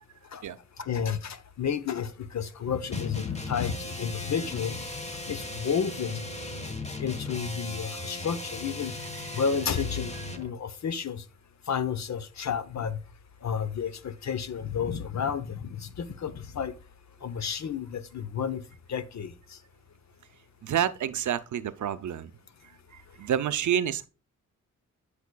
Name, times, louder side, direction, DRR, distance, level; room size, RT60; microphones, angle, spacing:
voice 1, 0.8-4.8 5.2-6.2 7.0-8.9 9.3-11.2 11.7-13.0 13.4-16.7 17.2-18.6 18.9-19.3, left 7 dB, 60° left, 0.8 m, -31 dB
sound 1, 2.9-10.5, left 2 dB, 20° left, 1.2 m, -37 dB
voice 2, 20.6-22.3 22.9-24.1, right 9 dB, 65° right, 0.6 m, -29 dB
13.0 x 4.9 x 2.3 m
cardioid pair, 70°, 32 cm